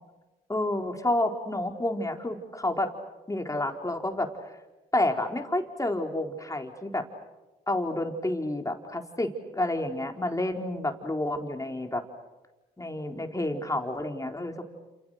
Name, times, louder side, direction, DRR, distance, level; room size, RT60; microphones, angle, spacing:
voice 1, 0.5-2.9 3.3-4.3 4.9-7.0 7.7-12.0 12.8-14.6, left 1 dB, 15° left, 4 dB, 4.3 m, -29 dB
29.5 x 28.5 x 6.6 m, 1.1 s
supercardioid pair, 50°, 19 cm